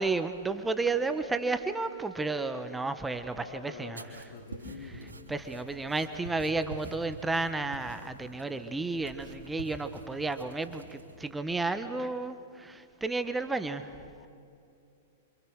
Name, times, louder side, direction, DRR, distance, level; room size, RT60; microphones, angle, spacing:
voice 1, 0.0-4.0 5.3-13.8, right 3 dB, 10° right, 9 dB, 1.4 m, -32 dB
voice 2, 3.4-5.2 13.2-14.3, left 5 dB, 70° left, 5 dB, 3.2 m, -48 dB
sound 1, 3.9-11.3, right 2 dB, 85° right, 3.8 m, -47 dB
27.5 x 27.0 x 6.6 m, 2.5 s
hypercardioid pair, 105°, 0 cm